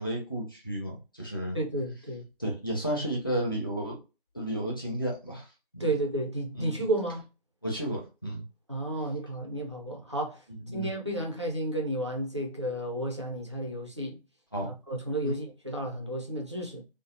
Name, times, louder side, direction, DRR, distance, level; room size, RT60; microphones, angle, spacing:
voice 1, 0.0-1.6 2.4-4.0 4.3-5.8 6.5-6.7 7.6-8.4 10.7-10.9 14.5-14.7 15.2-15.4, right 1 dB, 25° left, 0.5 m, -32 dB
voice 2, 1.5-2.3 5.8-7.2 8.7-10.4 10.7-14.2 14.6-16.8, right 1 dB, 30° right, 0.4 m, -32 dB
2.5 x 2.1 x 2.6 m
figure-of-eight pair, 160°, 29 cm